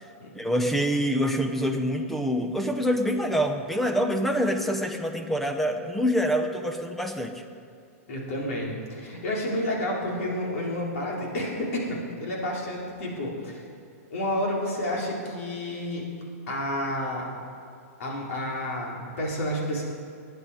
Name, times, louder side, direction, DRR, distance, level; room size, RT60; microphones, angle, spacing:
voice 1, 0.3-7.4, equal, ahead, 6 dB, 0.7 m, -26 dB
voice 2, 8.1-13.7 14.1-16.1 16.5-17.3 18.0-19.8, left 1 dB, 65° left, -3 dB, 4.0 m, -30 dB
20.0 x 9.4 x 4.9 m, 2.4 s
supercardioid pair, 165°, 8 cm